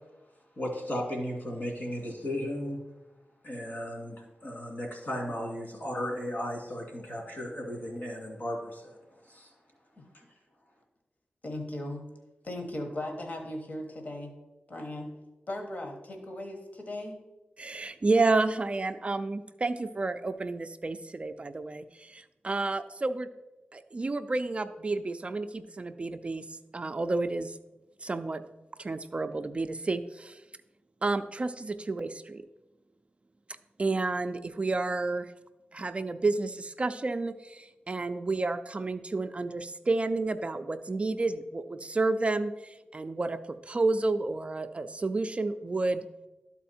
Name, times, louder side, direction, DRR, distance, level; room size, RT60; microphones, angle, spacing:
voice 1, 0.6-2.8 3.4-9.0 9.2-9.5, equal, 60° left, 0 dB, 2.2 m, -35 dB
voice 2, 11.4-12.1 12.4-14.3 14.7-15.1 15.5-17.2, left 1 dB, 45° left, 3 dB, 1.2 m, -37 dB
voice 3, 17.6-23.3 23.7-27.6 28.0-28.4 28.8-30.4 31.0-32.5 33.8-35.3 35.7-43.4 43.7-46.1, right 3 dB, 35° right, 9 dB, 0.3 m, -30 dB
12.0 x 4.2 x 4.2 m, 1.0 s
wide cardioid pair, 105°, 4 cm